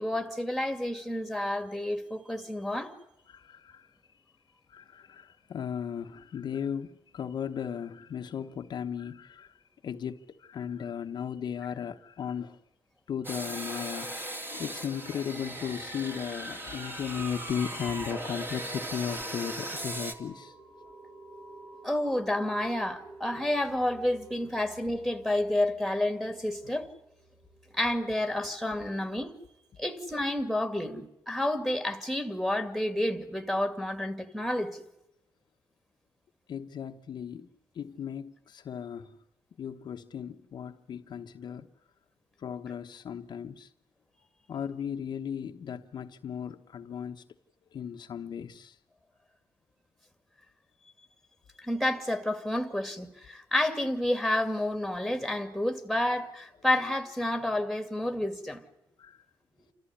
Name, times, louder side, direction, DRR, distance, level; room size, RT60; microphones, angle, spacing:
voice 1, 0.0-2.9 21.8-26.9 27.7-29.3 29.8-34.8 51.6-58.6, left 1 dB, ahead, 2.3 m, -30 dB
voice 2, 3.3-3.9 4.7-12.6 13.1-20.5 36.5-37.5 37.7-39.2 39.6-41.7 42.4-43.7 44.5-47.2 47.7-48.8 59.0-59.2, left 8 dB, 60° left, 1.0 m, -36 dB
Metal Saw, 13.2-20.1, right 1 dB, 25° right, 2.6 m, -38 dB
sound 1, 15.1-29.2, right 2 dB, 60° right, 4.3 m, -52 dB
28.0 x 14.0 x 9.9 m
cardioid pair, 110°, 9 cm